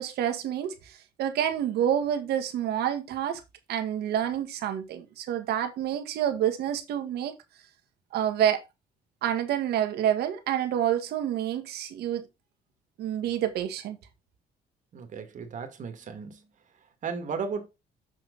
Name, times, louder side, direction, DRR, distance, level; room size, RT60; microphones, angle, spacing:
voice 1, 0.0-3.4 3.7-7.3 8.1-8.6 9.2-12.3 13.0-14.0, right 10 dB, 70° right, 1.7 m, -28 dB
voice 2, 14.9-16.5 16.7-17.7, right 5 dB, 50° right, 2.1 m, -35 dB
7.4 x 5.5 x 4.0 m
cardioid pair, 110°, 17 cm